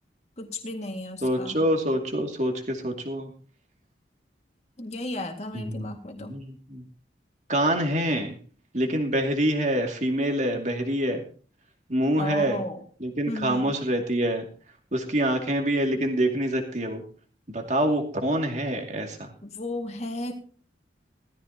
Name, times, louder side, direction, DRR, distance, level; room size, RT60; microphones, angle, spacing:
voice 1, 0.4-1.6 4.8-6.3 12.2-12.8 13.3-13.7 19.4-20.3, left 1 dB, 35° left, 3 dB, 2.0 m, -34 dB
voice 2, 1.2-3.3 5.5-5.8 6.2-6.8 7.5-8.4 8.7-11.2 11.9-12.6 13.0-14.5 14.9-17.0 17.5-19.3, right 1 dB, 40° right, 3 dB, 2.4 m, -26 dB
17.0 x 14.0 x 2.9 m, 0.41 s
head